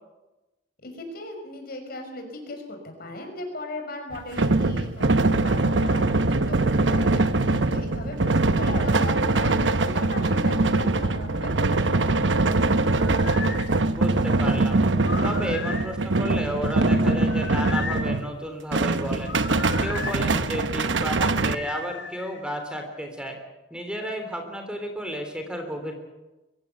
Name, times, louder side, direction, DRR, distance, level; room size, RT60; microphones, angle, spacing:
voice 1, 0.8-12.1, left 2 dB, 55° left, 4 dB, 5.9 m, -37 dB
sound 1, 4.1-18.3 18.7-21.5, right 2 dB, 85° right, 1.0 m, -23 dB
sound 2, 12.8-13.7 15.0-15.9 17.2-18.1 19.2-20.2 21.5-22.4, left 5 dB, 75° left, 3.6 m, -35 dB
voice 2, 13.9-14.9 15.2-19.4 19.8-23.4 23.7-25.9, equal, 5° right, 5 dB, 3.3 m, -32 dB
23.5 x 16.5 x 8.3 m, 1.1 s
head